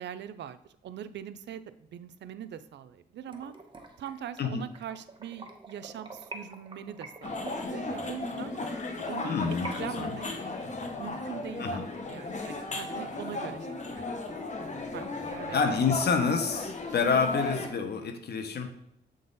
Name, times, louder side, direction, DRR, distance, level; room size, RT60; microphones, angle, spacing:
voice 1, 0.0-3.5 4.0-8.5 9.1-9.3 9.8-10.3 11.0-14.3 14.9-16.0, right 9 dB, 80° right, 12 dB, 0.5 m, -42 dB
sound 1, 3.3-9.7 10.1-12.6 13.0-13.1 13.5-13.6 13.9-14.0 14.3-15.0, right 3 dB, 25° right, 1.0 m, -47 dB
sound 2, 7.2-17.7, left 2 dB, 40° left, 1.0 m, -35 dB
voice 2, 9.2-10.2 11.6-11.8 15.5-18.7, left 5 dB, 65° left, 6 dB, 1.0 m, -28 dB
7.6 x 3.9 x 4.0 m, 0.78 s
cardioid pair, 85°, 18 cm